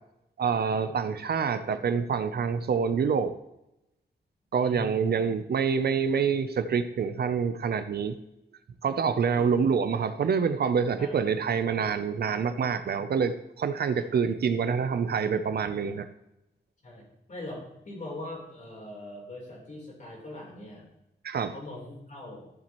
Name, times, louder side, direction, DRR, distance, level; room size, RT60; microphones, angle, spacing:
voice 1, 0.4-3.4 4.5-8.2 8.8-16.1 21.2-21.5, right 6 dB, 60° right, 11 dB, 0.6 m, -26 dB
voice 2, 4.5-5.0 9.4-9.7 11.0-11.3 14.0-14.2 16.8-20.9 21.5-22.5, left 1 dB, 45° left, -3 dB, 3.9 m, -42 dB
13.5 x 7.3 x 3.1 m, 0.88 s
wide cardioid pair, 150°, 19 cm